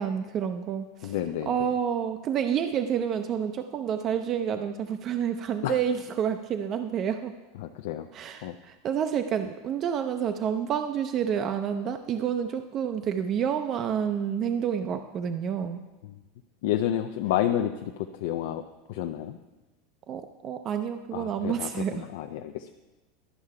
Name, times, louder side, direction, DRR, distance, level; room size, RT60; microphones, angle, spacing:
voice 1, 0.0-1.1 1.5-7.3 8.1-15.8 20.1-22.1, right 8 dB, 40° right, 8 dB, 0.4 m, -29 dB
voice 2, 1.0-1.7 5.6-5.8 7.6-8.1 8.4-8.5 16.0-16.2 16.6-18.6 18.9-19.4 21.1-22.7, left 11 dB, 70° left, 7 dB, 0.4 m, -30 dB
11.0 x 5.5 x 4.8 m, 1.2 s
supercardioid pair, 120°, 0 cm